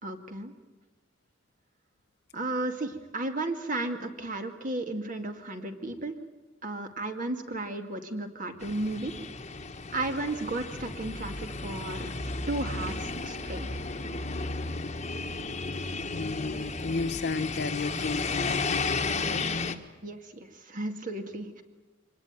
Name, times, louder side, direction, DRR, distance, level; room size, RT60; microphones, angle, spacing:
voice 1, 0.0-0.5 2.3-6.2 6.6-9.2 9.9-12.1 12.5-13.7 20.0-21.6, right 2 dB, 45° right, 5 dB, 2.2 m, -34 dB
sound 1, 8.6-19.7, left 3 dB, 35° left, 1.4 m, -33 dB
voice 2, 16.1-19.5, left 4 dB, 60° left, 10 dB, 0.8 m, -34 dB
25.0 x 19.5 x 9.0 m, 1.2 s
head